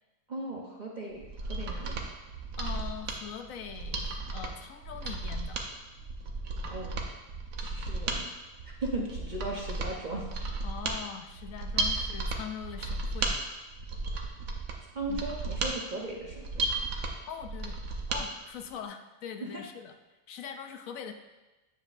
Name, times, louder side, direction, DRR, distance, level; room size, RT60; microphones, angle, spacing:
voice 1, 0.3-2.0 6.7-7.0 7.6-8.3 8.6-10.2 11.8-11.9 14.9-16.7 19.4-19.6, right 2 dB, 40° right, -2 dB, 0.7 m, -37 dB
Mechanisms, 1.2-18.2 18.6-18.7, right 3 dB, 75° right, 1.2 m, -34 dB
voice 2, 2.6-5.6 10.6-13.3 15.1-15.3 17.3-19.9 20.3-21.1, left 8 dB, 70° left, 6 dB, 1.0 m, -42 dB
9.6 x 7.1 x 2.5 m, 1.1 s
omnidirectional pair, 1.5 m